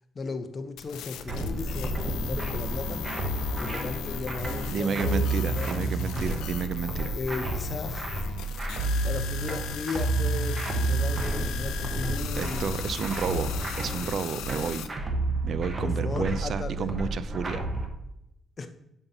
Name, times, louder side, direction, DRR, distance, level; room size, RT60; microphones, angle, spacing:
voice 1, 0.1-3.0 3.6-6.0 7.1-8.1 9.0-12.7 15.8-17.0 18.6-18.7, left 4 dB, 40° left, 9 dB, 0.7 m, -36 dB
sound 1, 0.8-14.9, left 10 dB, 90° left, 0.4 m, -38 dB
sound 2, 1.3-17.9, right 2 dB, 30° right, 1.0 m, -30 dB
voice 2, 4.7-7.1 12.4-13.5 13.8-14.9 15.4-17.7, right 6 dB, 60° right, 15 dB, 0.3 m, -31 dB
sound 3, 4.8-7.9, left 2 dB, 60° left, 1.1 m, -49 dB
7.0 x 5.4 x 2.7 m, 0.83 s
cardioid pair, 90°, 0 cm